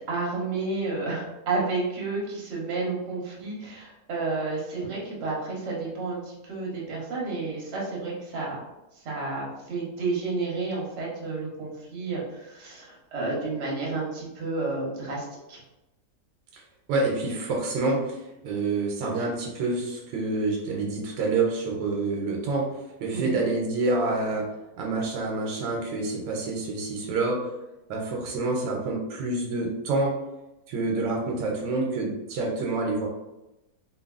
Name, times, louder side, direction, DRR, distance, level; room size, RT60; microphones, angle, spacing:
voice 1, 0.1-8.6 9.0-15.6 23.1-23.4, right 3 dB, 50° right, -4 dB, 0.9 m, -31 dB
voice 2, 16.9-24.5 24.8-27.5 27.9-30.2 30.7-33.1, right 3 dB, 90° right, -1 dB, 1.2 m, -27 dB
2.8 x 2.6 x 2.3 m, 0.95 s
omnidirectional pair, 1.8 m